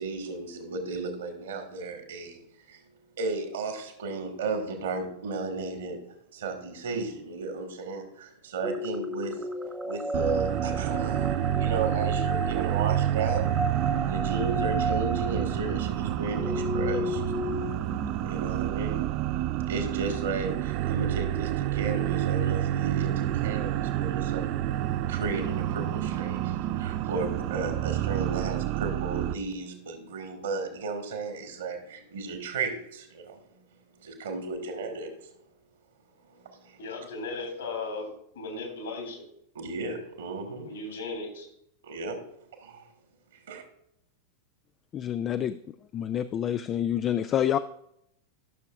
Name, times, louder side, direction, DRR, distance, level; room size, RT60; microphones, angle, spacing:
voice 1, 0.0-2.4 2.7-2.8 3.2-6.0 6.3-9.3 9.8-13.5 14.1-17.2 18.2-19.1 19.7-24.5 25.1-33.6 33.9-35.1 36.3-36.8 39.5-40.7 41.8-42.2 42.6-42.9 43.5-43.6, right 4 dB, 60° right, 5 dB, 1.7 m, -34 dB
sound 1, 8.6-18.5, equal, 5° right, 0.7 m, -33 dB
sound 2, 10.1-29.3, right 13 dB, 45° right, 0.4 m, -29 dB
voice 2, 36.8-38.1 38.3-39.2 40.6-41.5, left 3 dB, 65° left, 4 dB, 3.1 m, -36 dB
voice 3, 44.9-47.6, left 10 dB, 30° left, 12 dB, 0.3 m, -28 dB
13.5 x 6.5 x 2.4 m, 0.74 s
figure-of-eight pair, 90°, 0 cm